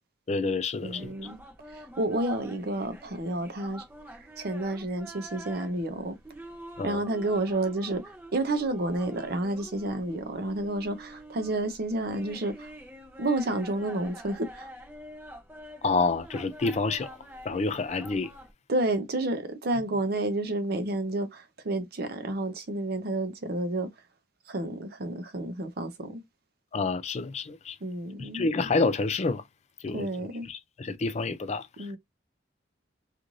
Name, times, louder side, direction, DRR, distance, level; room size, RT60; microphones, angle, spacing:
voice 1, 0.3-1.1 6.8-7.0 15.8-17.1 17.5-18.3 26.7-27.8 28.3-29.4 29.8-30.1 30.5-31.6, left 3 dB, 35° left, 0.4 m, -28 dB
sound 1, 0.8-18.5, right 1 dB, 10° right, 0.6 m, -47 dB
voice 2, 0.8-1.4 1.7-6.2 6.8-12.7 13.2-14.7 18.7-23.9 24.5-26.2 27.8-28.5 29.9-30.5 31.8-32.0, right 2 dB, 55° right, 0.6 m, -30 dB
2.5 x 2.4 x 3.0 m
head